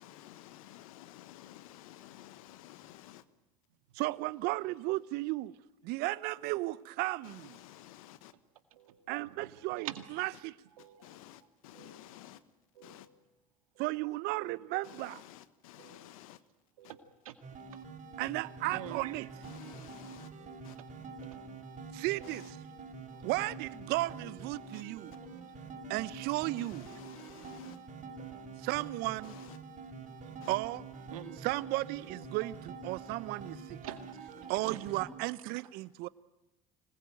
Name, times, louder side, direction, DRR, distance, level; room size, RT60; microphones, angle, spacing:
voice 1, 0.0-3.2 7.2-8.3 11.0-12.4 12.8-13.1 14.8-16.4 19.4-20.3 20.6-20.8 22.2-22.5 24.7-24.8 26.6-27.8 29.2-29.6 30.4-30.5, left 14 dB, 80° left, 1.3 m, -53 dB
voice 2, 3.9-5.5 5.8-7.6 9.1-9.9 10.2-10.6 13.8-15.2 18.2-19.3 21.9-22.6 23.2-25.1 25.9-26.9 28.6-29.4 30.5-30.8 31.4-33.8 34.5-36.1, right 20 dB, 65° right, 0.9 m, -34 dB
voice 3, 8.7-10.2 10.8-11.2 11.7-12.2 12.8-13.2 13.8-14.1 14.8-15.1 15.8-16.1 16.8-17.3 18.7-19.1 21.2-21.7 22.2-22.5 23.2-23.4 25.2-25.5 27.2-27.3 28.2-28.5 29.2-29.4 30.2-30.5 31.1-31.5 32.4-32.5 33.1-34.8, right 11 dB, 90° right, 2.1 m, -49 dB
sound 1, 17.4-35.1, right 4 dB, 45° right, 6.1 m, -46 dB
25.5 x 20.5 x 9.2 m
hypercardioid pair, 75°, 18 cm